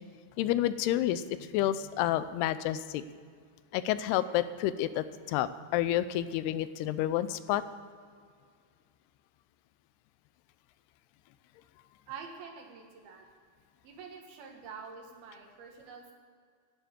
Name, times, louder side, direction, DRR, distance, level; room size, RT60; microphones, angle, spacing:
voice 1, 0.4-3.0 3.7-7.6, left 12 dB, 85° left, 14 dB, 2.7 m, -29 dB
voice 2, 12.1-13.3 13.8-16.1, right 6 dB, 75° right, 2 dB, 3.4 m, -46 dB
11.5 x 11.0 x 7.4 m, 2.1 s
omnidirectional pair, 4.5 m